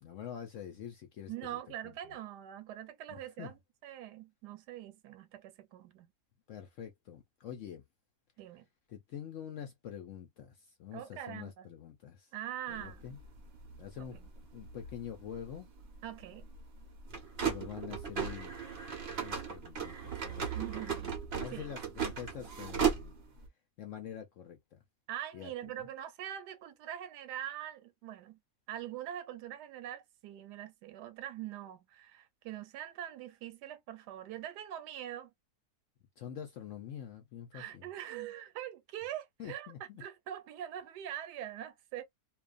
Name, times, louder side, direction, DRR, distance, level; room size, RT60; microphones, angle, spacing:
voice 1, 0.0-1.6 1.8-2.2 3.4-3.5 6.5-7.8 8.9-12.3 12.7-13.2 13.8-14.2 14.5-15.7 17.4-18.5 19.2-20.5 20.7-20.9 21.4-23.1 23.8-24.8 25.3-25.7 36.2-37.9 39.4-40.0, left 9 dB, 70° left, 0.7 m, -45 dB
voice 2, 1.3-6.1 8.4-8.7 10.9-11.7 12.3-13.2 14.1-14.3 16.0-16.5 20.5-21.1 21.5-21.7 25.1-28.4 28.7-35.3 37.5-39.7 40.0-42.0, right 11 dB, 80° right, 1.2 m, -43 dB
sound 1, 12.7-23.5, right 7 dB, 55° right, 0.7 m, -37 dB
2.5 x 2.3 x 2.4 m
omnidirectional pair, 1.8 m